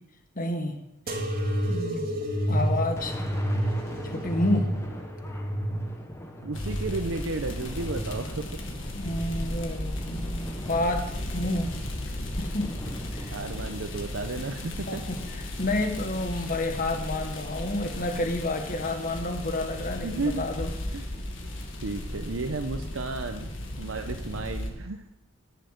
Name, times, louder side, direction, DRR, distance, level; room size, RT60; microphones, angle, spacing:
voice 1, 0.3-0.8 1.7-2.1 2.5-3.2 4.1-4.7 8.9-11.8 12.4-12.7 13.1-13.4 13.7-13.8 14.9-15.2 15.6-20.7, left 1 dB, 45° left, 5 dB, 1.4 m, -29 dB
sound 1, 1.1-8.3 8.8-9.6 10.3-10.9 11.8-11.9, equal, 50° right, 1.9 m, -30 dB
Thunder, 2.9-17.2, left 1 dB, 15° left, 1.2 m, -43 dB
voice 2, 6.4-8.6 13.3-15.1 20.0-20.5 20.9-21.0 21.8-23.5 23.8-25.0, right 3 dB, 90° right, 6 dB, 0.7 m, -33 dB
sound 2, 6.5-24.7, left 1 dB, 75° left, 1.8 m, -35 dB
10.5 x 6.5 x 8.1 m, 0.92 s
head